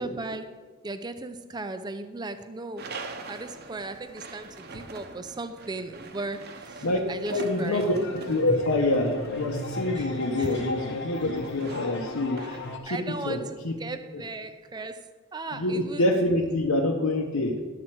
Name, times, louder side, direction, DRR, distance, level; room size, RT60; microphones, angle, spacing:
voice 1, 0.0-3.0 3.3-7.8 8.5-8.6 9.9-10.7 11.2-11.3 12.4-12.6 12.9-16.0, right 2 dB, 20° right, 11 dB, 0.4 m, -37 dB
sound 1, 2.8-12.8, right 3 dB, 45° right, 0.8 m, -43 dB
voice 2, 7.3-13.4 13.6-13.7 15.5-17.5, left 1 dB, 80° left, 0 dB, 0.9 m, -26 dB
sound 2, 7.6-12.8, left 2 dB, 50° left, 0.9 m, -35 dB
11.0 x 7.5 x 4.5 m, 1.5 s
head